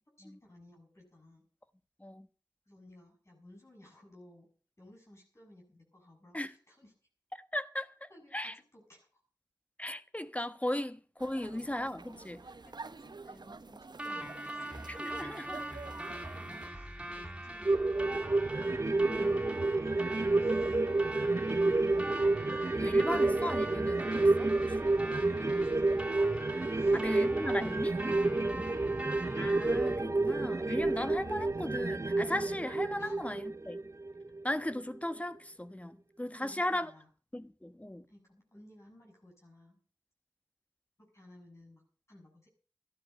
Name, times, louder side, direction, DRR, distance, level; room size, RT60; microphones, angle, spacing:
voice 1, 0.2-1.5 2.7-4.5 4.8-6.9 8.1-9.2 11.3-11.5 12.1-14.7 15.9-18.5 20.4-21.0 21.7-22.1 24.3-26.2 26.7-27.1 28.4-29.0 33.0-33.2 36.3-37.1 38.1-39.8 41.0-41.8 42.1-42.5, left 1 dB, 40° left, 6.9 m, -58 dB
voice 2, 7.4-8.5 9.8-12.4 14.9-15.8 19.1-19.4 22.8-24.5 26.9-28.0 29.4-33.8 34.4-36.9 37.3-38.1, left 1 dB, 20° left, 1.2 m, -37 dB
sound 1, 11.2-16.7, right 4 dB, 75° right, 1.0 m, -49 dB
sound 2, 14.0-30.0, right 1 dB, 10° right, 4.2 m, -42 dB
sound 3, 17.6-34.4 34.8-34.9, right 2 dB, 45° right, 0.6 m, -30 dB
13.5 x 11.5 x 6.5 m
wide cardioid pair, 45°, 7 cm